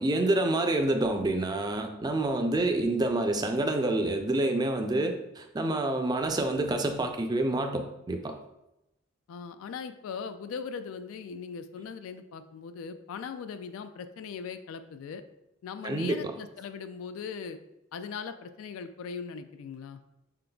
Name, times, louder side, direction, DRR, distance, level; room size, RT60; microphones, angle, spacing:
voice 1, 0.0-8.4 15.8-16.3, right 2 dB, 20° right, 5 dB, 0.3 m, -28 dB
voice 2, 9.3-15.2 15.6-17.6 17.9-20.0, left 6 dB, 80° left, 10 dB, 0.3 m, -39 dB
5.7 x 3.8 x 2.2 m, 0.89 s
head